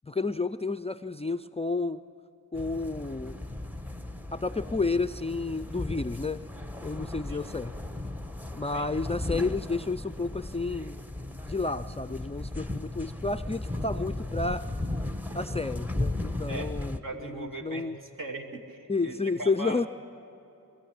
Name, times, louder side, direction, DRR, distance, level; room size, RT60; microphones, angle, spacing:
voice 1, 0.1-2.0 2.5-3.4 4.3-6.4 6.8-7.7 8.5-11.0 11.5-14.6 15.3-17.0 17.2-18.0 18.9-19.9, left 3 dB, 20° left, 11 dB, 0.4 m, -31 dB
sound 1, 2.5-17.0, left 2 dB, 5° right, 1.0 m, -36 dB
voice 2, 17.0-17.9 18.2-19.8, right 2 dB, 60° right, 0 dB, 2.6 m, -39 dB
22.5 x 14.0 x 8.7 m, 2.9 s
wide cardioid pair, 75°, 36 cm